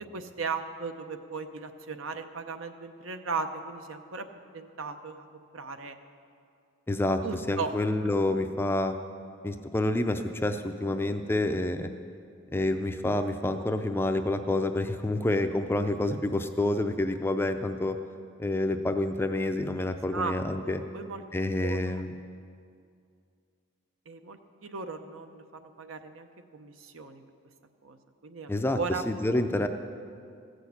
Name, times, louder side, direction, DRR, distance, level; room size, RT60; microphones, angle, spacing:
voice 1, 0.1-4.3 4.5-6.0 7.2-7.7 20.1-20.3 20.6-21.2 21.6-22.0 24.1-27.2 27.8-28.0 28.2-29.0, right 4 dB, 70° right, 8 dB, 0.8 m, -37 dB
voice 2, 6.9-7.2 7.5-8.9 9.4-11.9 12.5-18.0 18.4-20.8 21.3-22.1 28.5-28.8 29.1-29.7, left 1 dB, 10° left, 7 dB, 0.4 m, -28 dB
15.0 x 6.4 x 8.4 m, 2.3 s
head